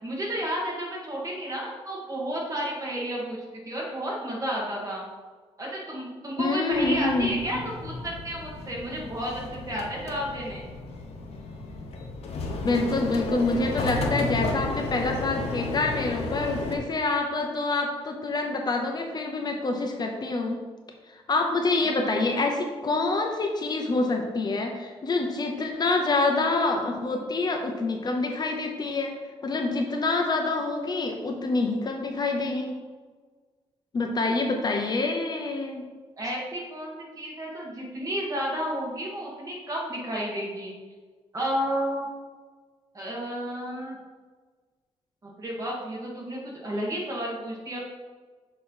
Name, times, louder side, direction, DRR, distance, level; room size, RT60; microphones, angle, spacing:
voice 1, 0.0-5.0 5.6-10.6 36.2-40.7 41.3-42.1 42.9-44.0 45.2-47.8, equal, 30° right, -3 dB, 1.8 m, -32 dB
voice 2, 6.4-7.7 12.6-20.6 21.3-29.1 29.4-32.7 33.9-35.8, left 3 dB, 40° left, 2 dB, 0.7 m, -26 dB
sound 1, 6.7-16.8, left 2 dB, 70° left, 0.9 m, -33 dB
6.3 x 3.1 x 5.5 m, 1.4 s
cardioid pair, 115°, 11 cm